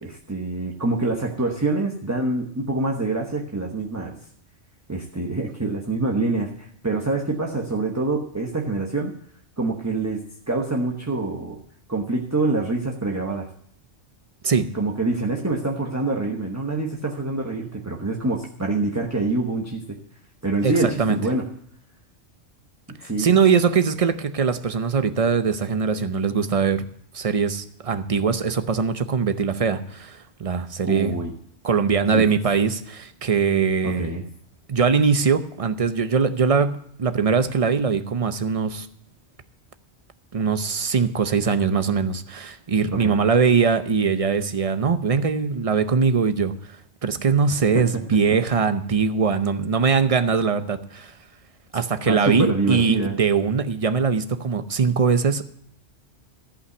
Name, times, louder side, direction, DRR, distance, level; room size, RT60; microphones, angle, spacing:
voice 1, 0.0-4.1 4.9-9.1 9.6-11.6 11.9-13.5 14.7-19.8 20.4-21.4 23.0-23.3 30.8-31.3 32.1-32.2 33.8-34.2 42.9-43.2 47.7-47.8 52.1-53.2, right 2 dB, 15° right, 0 dB, 1.0 m, -25 dB
voice 2, 20.6-21.2 23.2-26.8 27.1-31.1 31.6-34.1 34.7-38.9 40.3-46.5 47.0-51.1 51.7-55.6, right 5 dB, 35° right, 10 dB, 0.6 m, -21 dB
14.5 x 5.7 x 7.9 m, 0.67 s
omnidirectional pair, 1.2 m